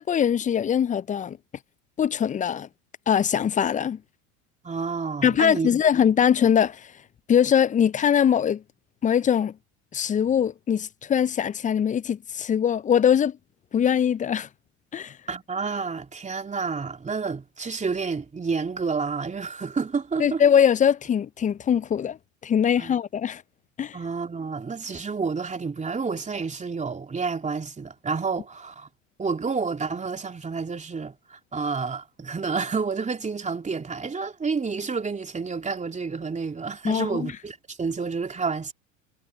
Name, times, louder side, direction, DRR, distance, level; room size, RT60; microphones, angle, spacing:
voice 1, 0.0-1.4 2.0-2.7 3.1-4.0 5.2-6.8 7.3-8.6 9.0-9.5 9.9-13.3 13.7-14.5 14.9-15.1 20.2-22.2 22.4-23.4 23.8-24.0 36.8-37.3, left 8 dB, 20° left, 0.5 m, -22 dB
voice 2, 4.6-5.7 15.3-20.4 22.8-22.9 23.9-28.9 29.2-38.7, right 5 dB, 20° right, 2.8 m, -29 dB
hypercardioid pair, 80°, 40 cm